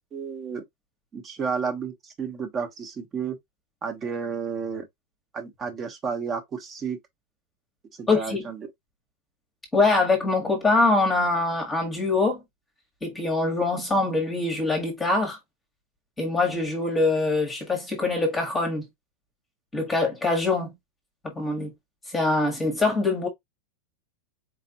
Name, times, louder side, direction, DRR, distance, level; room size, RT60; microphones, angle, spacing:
voice 1, 0.1-0.6 1.1-3.4 3.8-4.8 5.3-7.0 8.0-8.7, right 6 dB, 20° right, 1.0 m, -31 dB
voice 2, 8.1-8.4 9.7-12.4 13.0-15.4 16.2-18.8 19.7-20.7 21.2-21.7 22.1-23.3, left 3 dB, 10° left, 1.2 m, -23 dB
4.5 x 3.2 x 2.8 m
supercardioid pair, 165°, 0 cm